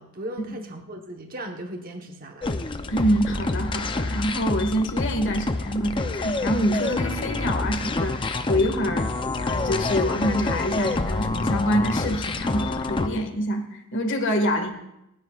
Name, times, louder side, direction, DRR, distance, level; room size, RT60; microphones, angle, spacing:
voice 1, 0.0-2.6 14.5-14.7, right 1 dB, 40° right, 3 dB, 1.1 m, -37 dB
sound 1, 2.4-13.1, left 2 dB, 20° left, 0.6 m, -27 dB
voice 2, 2.9-9.1 9.4-14.7, equal, 55° left, 4 dB, 1.8 m, -26 dB
27.5 x 9.8 x 2.4 m, 0.86 s
head